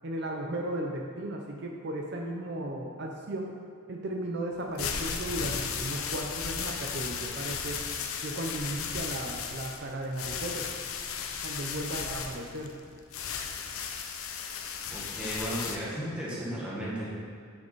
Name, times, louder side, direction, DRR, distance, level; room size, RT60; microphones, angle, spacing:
voice 1, 0.0-3.6 3.9-7.8 8.2-10.7 11.4-12.7, right 1 dB, 55° right, 0 dB, 0.6 m, -35 dB
sound 1, 4.6-15.8, left 6 dB, 85° left, 0.7 m, -35 dB
voice 2, 14.9-17.0, equal, 5° right, -7 dB, 1.7 m, -34 dB
9.4 x 5.1 x 4.6 m, 2.2 s
head